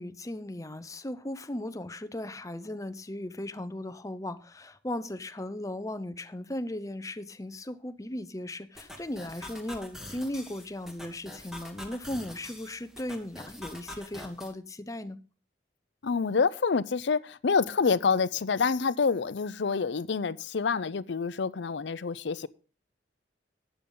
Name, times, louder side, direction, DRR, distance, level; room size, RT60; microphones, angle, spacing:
voice 1, 0.0-15.2, left 1 dB, 20° left, 0.6 m, -37 dB
sound 1, 8.8-14.5, left 1 dB, ahead, 1.9 m, -45 dB
voice 2, 16.0-22.5, left 5 dB, 70° left, 0.5 m, -27 dB
12.0 x 9.0 x 3.8 m
head